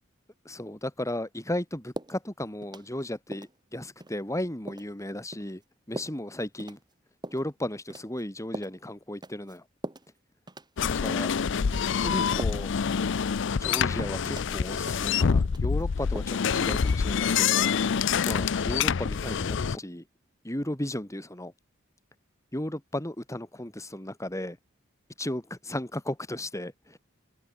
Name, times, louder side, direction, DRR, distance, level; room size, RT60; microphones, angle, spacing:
voice 1, 0.4-5.6 5.9-6.8 7.3-9.6 10.8-11.3 12.0-12.7 13.6-17.8 18.2-20.0 20.4-21.5 22.5-24.6 25.2-27.0, left 1 dB, 15° left, 3.2 m, -35 dB
sound 1, 1.9-2.2 2.6-3.0 3.3-3.5 4.0-4.1 4.7-4.9 5.3-5.5 6.0-6.2 6.6-6.8 7.2-7.5 7.9-8.2 8.5-8.8 9.2-9.6 9.8-10.1 10.5-10.8 11.1-11.3 11.7-11.9 12.4-12.8 13.0-13.2 13.7-13.9 14.3-14.5 14.9-15.1 15.4-15.8 16.2-16.4 16.7-16.9, right 1 dB, 20° right, 3.3 m, -40 dB
sound 2, 10.8-19.8, left 6 dB, 65° left, 0.5 m, -26 dB
head